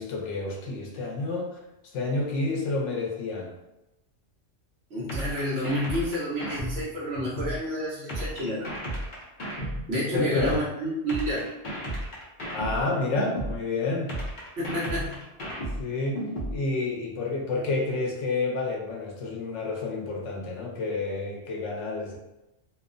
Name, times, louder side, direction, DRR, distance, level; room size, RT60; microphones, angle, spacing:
voice 1, 0.0-1.5 1.9-3.5 10.1-10.6 12.5-14.1 15.8-16.2 16.5-22.2, left 3 dB, 85° left, 0 dB, 0.9 m, -29 dB
voice 2, 4.9-8.7 9.6-11.5 14.6-15.2, equal, 60° right, -8 dB, 1.0 m, -30 dB
sound 1, 5.1-7.6 8.1-10.6 11.1-13.6 14.1-16.6, right 1 dB, 50° left, 0.7 m, -33 dB
2.8 x 2.0 x 2.5 m, 0.94 s
omnidirectional pair, 1.2 m